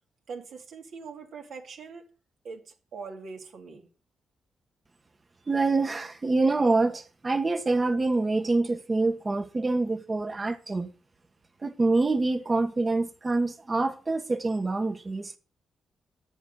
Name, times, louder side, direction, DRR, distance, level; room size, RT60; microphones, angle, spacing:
voice 1, 0.3-2.1 2.4-3.9, right 5 dB, 70° right, 2.4 m, -42 dB
voice 2, 5.5-10.9 11.6-15.4, right 3 dB, 30° right, 1.4 m, -26 dB
9.4 x 7.2 x 5.5 m
supercardioid pair, 50°, 0 cm